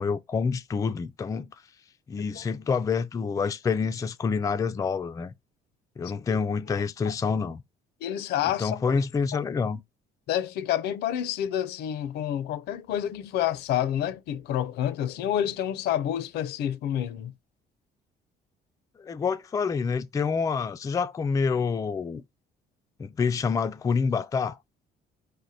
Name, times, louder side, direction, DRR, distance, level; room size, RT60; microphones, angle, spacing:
voice 1, 0.0-1.5 2.1-5.3 6.0-7.6 8.6-9.8 19.0-22.2 23.0-24.6, left 5 dB, 20° left, 0.3 m, -27 dB
voice 2, 8.0-9.0 10.3-17.3, left 11 dB, 75° left, 0.6 m, -29 dB
4.9 x 2.1 x 4.1 m
cardioid pair, 110°, 17 cm